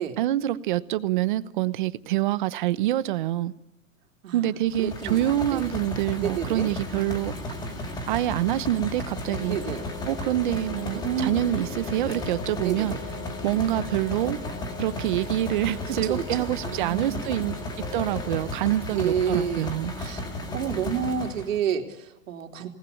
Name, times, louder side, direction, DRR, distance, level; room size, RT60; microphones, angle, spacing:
voice 1, 0.2-3.5 4.3-7.3 8.1-9.6 10.1-13.0 13.4-14.4 14.8-17.5 17.9-19.9, right 13 dB, 35° right, 0.9 m, -26 dB
voice 2, 4.2-5.7 6.2-6.7 9.4-9.8 11.0-11.8 12.6-13.0 15.9-17.6 18.9-19.7 20.0-20.3 20.5-22.7, right 8 dB, 70° right, 3.4 m, -30 dB
sound 1, 4.7-21.6, left 1 dB, 10° left, 1.9 m, -34 dB
sound 2, 9.2-18.5, left 6 dB, 85° left, 3.6 m, -41 dB
27.0 x 19.0 x 8.6 m
supercardioid pair, 175°, 41 cm